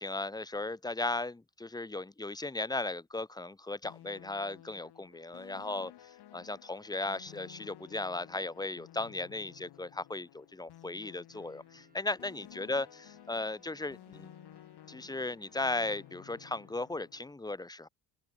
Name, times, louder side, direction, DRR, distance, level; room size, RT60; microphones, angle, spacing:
voice 1, 0.0-5.9 6.3-14.3 14.9-17.9, left 2 dB, 10° left, 1.0 m, -36 dB
sound 1, 3.8-17.3, left 12 dB, 70° left, 7.3 m, -54 dB
sound 2, 11.3-16.8, right 3 dB, 20° right, 5.8 m, -67 dB
open air
cardioid pair, 110°, 41 cm